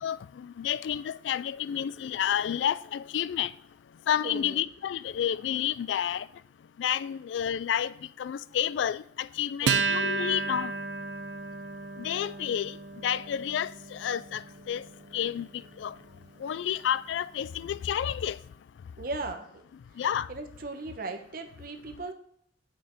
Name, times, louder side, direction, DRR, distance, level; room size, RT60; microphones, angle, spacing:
voice 1, 0.0-3.5 4.1-6.3 6.8-10.7 12.0-12.8 13.0-14.8 15.1-15.5 15.8-16.0 16.4-18.4 20.0-20.3, left 9 dB, 75° left, 0.3 m, -30 dB
voice 2, 4.2-4.6 9.6-9.8 19.0-19.5 20.3-22.1, right 3 dB, 50° right, 0.8 m, -37 dB
Acoustic guitar, 9.7-16.5, right 4 dB, 70° right, 0.5 m, -33 dB
6.7 x 6.0 x 4.4 m
head